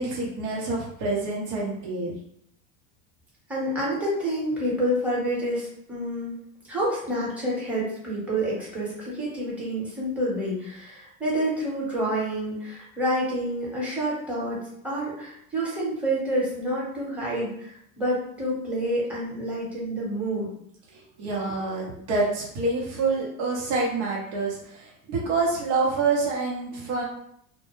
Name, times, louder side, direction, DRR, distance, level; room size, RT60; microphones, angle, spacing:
voice 1, 0.0-2.1 20.9-27.0, right 3 dB, 65° right, -4 dB, 0.9 m, -27 dB
voice 2, 3.5-6.3 6.7-20.5, right 1 dB, 5° right, -6 dB, 1.0 m, -28 dB
2.2 x 2.1 x 3.0 m, 0.71 s
supercardioid pair, 115°, 42 cm